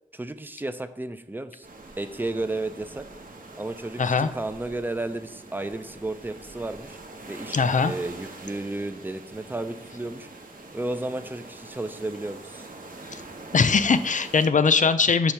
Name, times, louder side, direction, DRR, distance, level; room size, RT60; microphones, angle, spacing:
voice 1, 0.1-1.7 2.0-3.1 3.6-7.0 7.2-10.3 10.7-12.6, right 2 dB, 15° right, 10 dB, 0.4 m, -33 dB
sound 1, 1.6-14.5, right 2 dB, 70° right, 0.9 m, -44 dB
voice 2, 4.0-4.3 7.5-7.9 13.1-13.2 13.5-15.3, left 5 dB, 60° left, 11 dB, 0.4 m, -21 dB
6.0 x 3.2 x 5.6 m, 0.80 s
wide cardioid pair, 60°, 15 cm